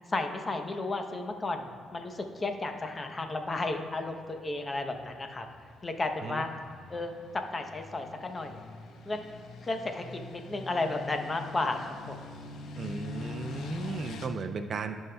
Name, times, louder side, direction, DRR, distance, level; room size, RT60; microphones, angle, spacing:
voice 1, 0.1-5.5 5.8-6.5 6.9-8.6 9.0-9.3 9.6-12.2, left 2 dB, 30° left, 5 dB, 0.8 m, -33 dB
sound 1, 1.3-14.3, left 4 dB, 75° left, 0.7 m, -45 dB
voice 2, 12.8-15.0, right 5 dB, 50° right, 8 dB, 0.4 m, -36 dB
14.5 x 5.4 x 2.3 m, 2.2 s
cardioid pair, 90°, 0 cm